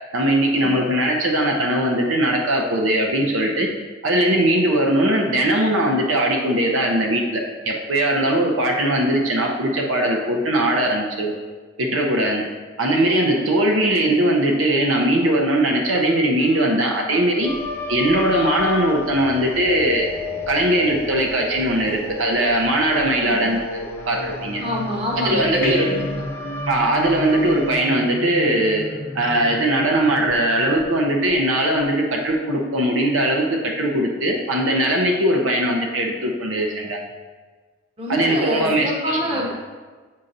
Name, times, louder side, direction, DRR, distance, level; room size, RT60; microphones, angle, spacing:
voice 1, 0.1-3.7 4.0-11.3 11.8-12.4 12.8-17.5 17.9-20.1 20.5-24.6 25.2-25.9 26.7-28.9 29.1-37.0 38.1-39.4, right 1 dB, 70° right, 1 dB, 0.7 m, -20 dB
sound 1, 16.4-19.0 21.9-22.8 25.6-28.5 31.6-31.7, left 1 dB, 40° left, 0.7 m, -37 dB
sound 2, 17.4-27.7, left 5 dB, 10° left, 0.4 m, -34 dB
Singing, 17.6-32.3, equal, 70° left, 0.9 m, -35 dB
voice 2, 23.2-23.5 24.6-26.2 38.0-39.5, equal, 25° right, -2 dB, 0.9 m, -26 dB
7.6 x 5.6 x 2.6 m, 1.4 s
head